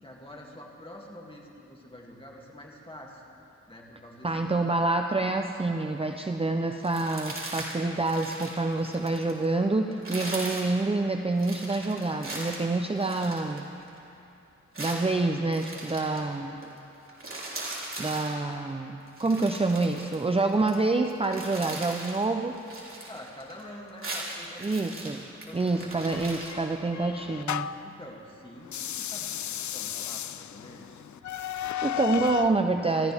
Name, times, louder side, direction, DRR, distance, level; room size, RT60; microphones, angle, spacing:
voice 1, 0.0-3.2 3.7-4.7 23.1-25.0 25.4-25.9 27.8-31.1 31.5-31.7, left 1 dB, 20° left, -2 dB, 2.6 m, -47 dB
voice 2, 4.2-13.7 14.8-16.6 18.0-22.6 24.6-25.2 25.5-27.7 31.8-33.1, right 3 dB, 20° right, 4 dB, 0.6 m, -27 dB
sound 1, 6.8-7.7 8.0-9.4 9.9-10.7 11.4-14.0 14.7-16.2 16.6-16.8 17.0-18.3 19.1-20.7 21.1-22.2 22.6-23.6 23.9-26.5, right 2 dB, 45° right, 3.5 m, -39 dB
sound 2, 26.1-27.9 28.6-32.6, left 10 dB, 75° left, 0.5 m, -34 dB
27.0 x 14.0 x 3.5 m, 2.8 s
wide cardioid pair, 85°, 29 cm